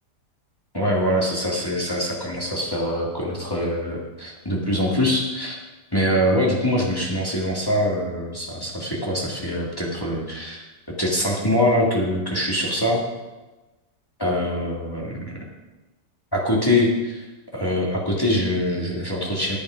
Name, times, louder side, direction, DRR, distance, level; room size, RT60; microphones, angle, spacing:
voice 1, 0.7-5.5 5.9-10.6 11.0-13.0 14.2-15.3 16.3-17.3 17.5-19.6, left 1 dB, 15° left, -3 dB, 1.8 m, -23 dB
10.5 x 8.7 x 5.1 m, 1.1 s
omnidirectional pair, 1.8 m